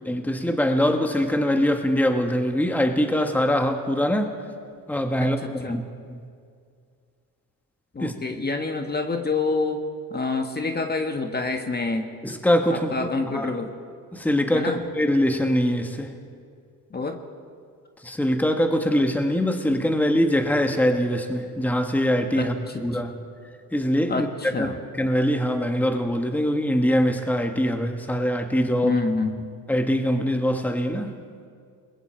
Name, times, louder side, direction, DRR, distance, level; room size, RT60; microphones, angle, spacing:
voice 1, 0.0-4.3 4.9-6.2 8.0-8.1 12.2-13.1 13.3-13.5 14.1-16.2 18.0-22.5 22.8-23.2 23.7-29.0 29.7-31.2, equal, 5° left, 5 dB, 1.6 m, -23 dB
voice 2, 5.2-5.8 7.9-9.8 10.1-12.1 12.7-13.7 14.5-14.8 16.9-17.2 22.4-22.5 22.7-22.8 24.1-24.8 28.8-29.5, left 3 dB, 25° left, 5 dB, 1.6 m, -27 dB
27.5 x 21.5 x 4.6 m, 2.2 s
cardioid pair, 90°, 36 cm